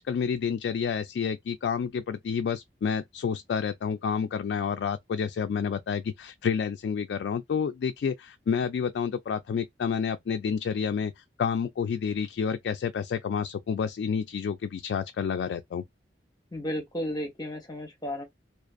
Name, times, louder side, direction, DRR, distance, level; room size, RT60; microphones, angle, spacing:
voice 1, 0.0-15.8, left 6 dB, 70° left, 0.3 m, -29 dB
voice 2, 16.5-18.2, equal, 25° left, 0.8 m, -33 dB
2.5 x 2.5 x 2.3 m
head